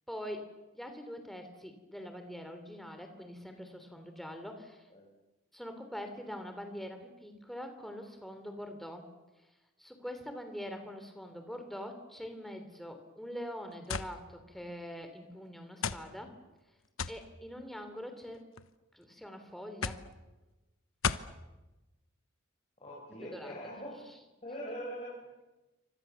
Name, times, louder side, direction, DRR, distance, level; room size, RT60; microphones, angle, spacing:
voice 1, 0.1-0.5 0.7-4.8 5.5-9.1 9.8-16.3 17.1-18.4 18.9-20.0 23.3-23.7, equal, ahead, 6 dB, 3.2 m, -44 dB
sound 1, 13.9-14.1 15.0-15.1 15.8-16.1 17.0-17.2 18.2-18.7 19.8-20.1 21.0-21.3, left 5 dB, 85° left, 1.1 m, -34 dB
voice 2, 22.8-24.0 24.4-25.3, equal, 30° left, -5 dB, 6.1 m, -42 dB
29.0 x 25.0 x 7.1 m, 1.1 s
head